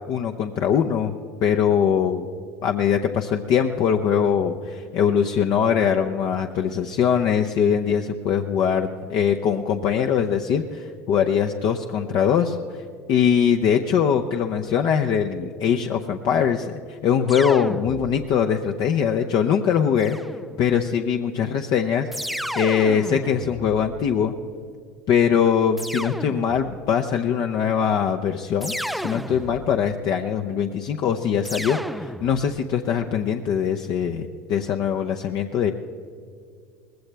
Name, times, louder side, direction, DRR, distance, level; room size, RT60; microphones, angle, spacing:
voice 1, 0.1-1.1 1.4-2.3 2.6-12.6 13.1-20.2 20.6-22.1 22.6-24.3 25.1-35.7, left 7 dB, 50° left, 4 dB, 0.8 m, -22 dB
sound 1, 17.3-18.5 20.0-20.9 22.1-24.4 25.8-26.9 28.6-30.0 31.4-32.7, equal, ahead, 0.3 m, -33 dB
19.5 x 16.0 x 3.4 m, 2.3 s
hypercardioid pair, 80°, 9 cm